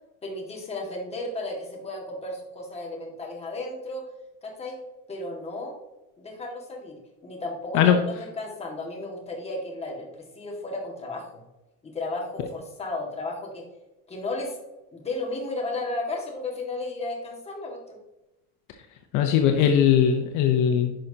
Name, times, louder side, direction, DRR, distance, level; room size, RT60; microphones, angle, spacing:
voice 1, 0.2-4.0 4.4-4.8 5.1-5.8 6.2-7.0 7.2-11.4 11.8-13.6 14.1-14.6 14.9-18.0, left 2 dB, 15° left, -1 dB, 1.9 m, -34 dB
voice 2, 19.1-21.0, left 8 dB, 55° left, 5 dB, 0.8 m, -20 dB
10.5 x 5.9 x 2.8 m, 1.0 s
cardioid pair, 135°, 36 cm